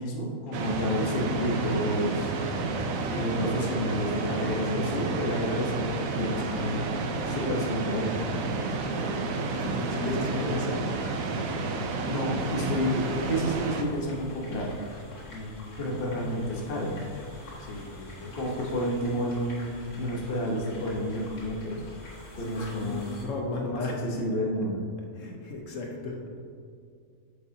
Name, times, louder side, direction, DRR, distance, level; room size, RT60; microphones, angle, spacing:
voice 1, 0.0-2.3 3.1-6.9 7.3-8.2 10.0-10.6 12.1-14.7 15.8-17.0 18.3-21.8 22.4-23.1 23.6-24.8, equal, 45° left, -2 dB, 1.2 m, -30 dB
sound 1, 0.5-13.8, right 3 dB, 70° right, 1.1 m, -30 dB
voice 2, 4.3-5.3 9.0-10.9 15.3-16.1 17.6-18.7 22.3-24.2 25.0-26.2, left 2 dB, 60° left, 0 dB, 1.1 m, -37 dB
sound 2, 12.4-23.2, left 1 dB, 80° left, 2.4 m, -46 dB
9.6 x 6.6 x 2.8 m, 2.2 s
omnidirectional pair, 1.6 m